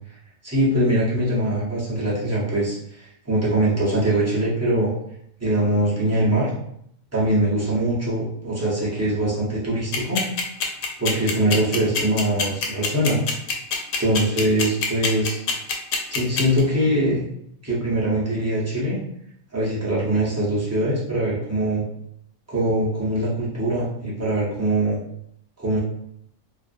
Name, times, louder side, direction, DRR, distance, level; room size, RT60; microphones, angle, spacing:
voice 1, 0.4-4.9 5.4-6.5 7.1-10.2 11.0-13.2 14.0-15.4 16.1-17.3 17.6-19.0 19.5-21.8 22.5-25.0 25.6-25.8, right 1 dB, 25° right, -8 dB, 0.3 m, -22 dB
sound 1, 9.9-16.6, left 5 dB, 90° left, 1.0 m, -23 dB
2.4 x 2.4 x 2.5 m, 0.72 s
omnidirectional pair, 1.5 m